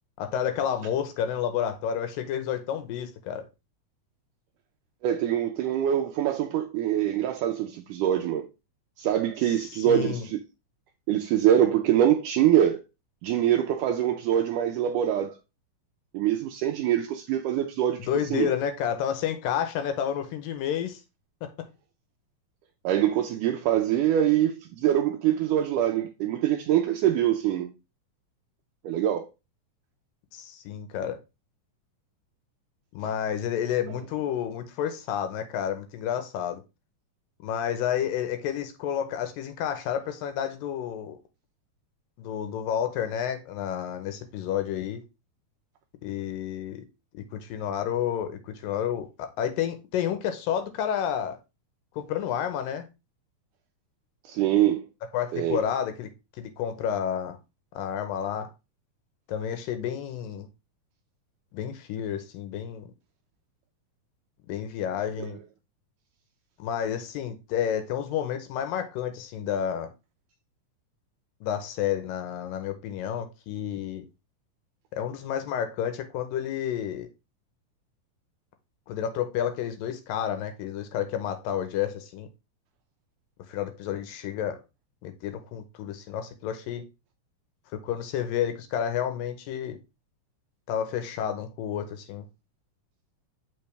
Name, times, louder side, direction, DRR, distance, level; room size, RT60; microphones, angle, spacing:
voice 1, 0.2-3.5 9.4-10.3 18.0-21.0 21.4-21.7 30.3-31.2 32.9-36.6 37.4-41.2 42.2-45.0 46.0-46.8 47.1-51.4 51.9-52.9 55.1-56.1 56.4-57.4 57.7-58.5 59.3-60.5 61.5-62.8 64.5-65.4 66.6-69.9 71.4-74.1 74.9-77.1 78.9-82.3 83.5-84.6 85.0-86.8 87.7-89.8 90.7-92.3, left 9 dB, 80° left, 2.6 m, -30 dB
voice 2, 5.0-8.5 9.0-10.4 11.1-12.8 13.2-15.3 16.1-18.5 22.8-27.7 28.8-29.3 33.0-33.1 54.3-54.9 55.3-55.7 65.2-65.4, right 11 dB, 80° right, 2.0 m, -24 dB
7.0 x 5.3 x 3.3 m
omnidirectional pair, 4.0 m